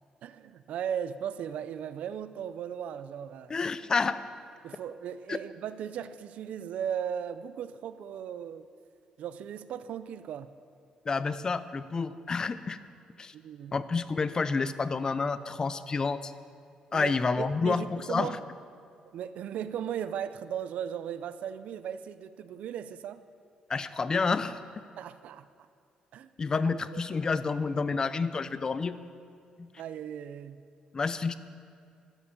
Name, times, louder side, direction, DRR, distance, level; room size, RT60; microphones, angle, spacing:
voice 1, 0.2-3.6 4.6-8.7 9.2-10.5 13.3-13.7 16.9-18.4 19.1-23.2 25.0-25.5 26.1-26.3 29.8-30.6, right 9 dB, 75° right, 13 dB, 0.6 m, -37 dB
voice 2, 3.5-4.2 5.3-5.4 11.1-12.8 13.2-13.3 13.7-16.3 16.9-18.4 23.7-24.6 26.4-29.0 29.6-29.7 30.9-31.3, left 4 dB, 30° left, 13 dB, 0.5 m, -29 dB
12.5 x 11.0 x 7.0 m, 2.4 s
cardioid pair, 115°, 2 cm